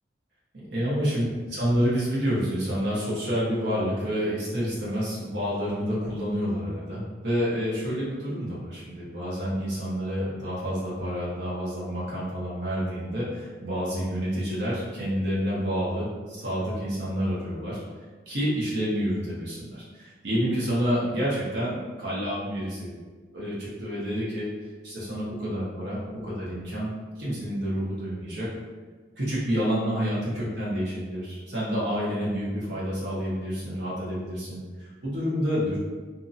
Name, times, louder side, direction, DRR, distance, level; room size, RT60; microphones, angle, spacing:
voice 1, 0.7-17.8 18.3-22.9 23.3-24.5 24.8-26.9 27.2-28.5 29.2-35.8, equal, 85° right, -7 dB, 1.1 m, -28 dB
2.8 x 2.7 x 2.5 m, 1.4 s
head